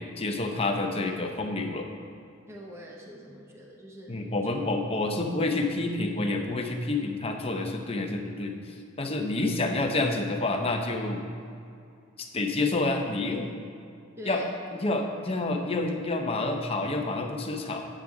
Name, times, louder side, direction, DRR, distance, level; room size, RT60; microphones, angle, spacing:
voice 1, 0.0-1.9 4.1-11.2 12.2-13.5 14.2-14.4 14.7-17.8, left 2 dB, 30° left, 3 dB, 0.7 m, -28 dB
voice 2, 2.5-4.3 9.0-9.1 14.2-14.4, equal, 15° right, -1 dB, 0.7 m, -44 dB
9.0 x 7.3 x 3.6 m, 2.4 s
head